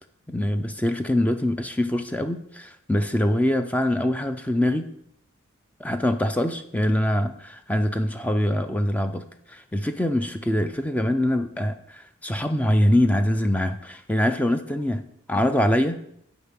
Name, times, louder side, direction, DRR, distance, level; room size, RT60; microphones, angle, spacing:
voice 1, 0.3-4.9 5.8-15.0 15.3-16.0, left 1 dB, 5° left, 8 dB, 0.4 m, -24 dB
8.0 x 5.2 x 7.4 m, 0.74 s
head